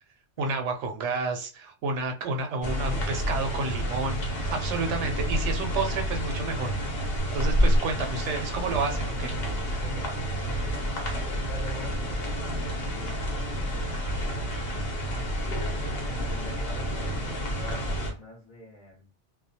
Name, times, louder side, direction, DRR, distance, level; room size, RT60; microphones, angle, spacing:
voice 1, 0.4-6.8 7.3-9.3, right 3 dB, 85° right, 5 dB, 0.9 m, -30 dB
sound 1, 2.6-18.1, equal, 60° left, 1.0 m, -29 dB
voice 2, 9.8-10.2 10.6-14.5 16.1-17.8 18.1-19.1, equal, 40° left, -3 dB, 0.9 m, -45 dB
2.4 x 2.1 x 2.7 m, 0.33 s
omnidirectional pair, 1.2 m